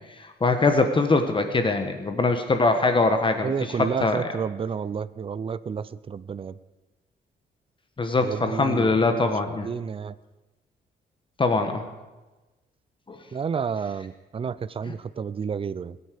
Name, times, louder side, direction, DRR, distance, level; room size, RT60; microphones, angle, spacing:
voice 1, 0.2-3.5 3.8-4.2 8.0-9.7 11.4-11.8 13.1-13.2 14.8-14.9, left 3 dB, 30° left, 6 dB, 1.3 m, -22 dB
voice 2, 3.4-6.6 8.2-9.0 9.5-10.1 13.3-16.0, right 6 dB, 30° right, 17 dB, 0.5 m, -30 dB
21.5 x 9.7 x 5.1 m, 1.1 s
cardioid pair, 110°, 18 cm